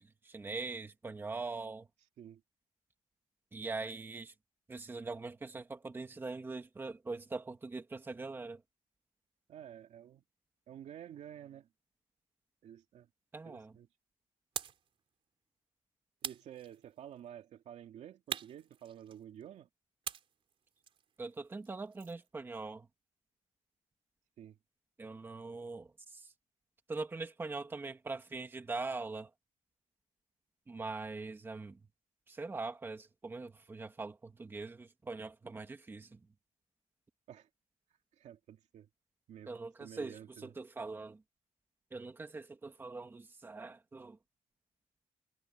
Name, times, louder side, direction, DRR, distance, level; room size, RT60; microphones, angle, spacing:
voice 1, 0.0-1.9 3.5-4.3 4.7-8.6 13.3-13.7 21.2-22.9 25.0-26.3 26.9-29.3 30.7-31.8 32.3-36.2 39.5-41.2 41.9-44.2, right 3 dB, 15° right, 1.7 m, -42 dB
voice 2, 9.5-10.2 10.7-11.7 12.6-13.1 13.4-13.9 16.2-19.7 24.4-24.6 37.3-37.5 38.2-38.9 39.3-39.5 39.8-40.5, right 10 dB, 60° right, 2.4 m, -51 dB
sound 1, 14.6-14.9 16.2-17.1 18.3-19.4 20.0-22.3, right 8 dB, 45° right, 3.4 m, -44 dB
cardioid pair, 180°, 13 cm